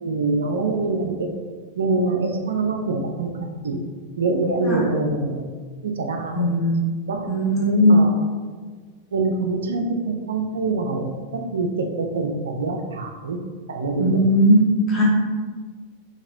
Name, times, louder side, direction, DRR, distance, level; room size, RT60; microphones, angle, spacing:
voice 1, 0.0-1.1 1.8-3.3 3.6-3.8 4.2-5.4 5.8-6.5 7.1-7.3 7.6-8.1 9.1-11.1 11.5-11.7 12.0-13.4 13.7-14.1, right 3 dB, 65° right, 4 dB, 0.4 m, -24 dB
voice 2, 6.3-6.7 7.3-8.1 14.0-14.6 14.9-15.0, equal, 25° left, -5 dB, 1.2 m, -18 dB
3.9 x 2.8 x 2.6 m, 1.5 s
figure-of-eight pair, 90°, 0 cm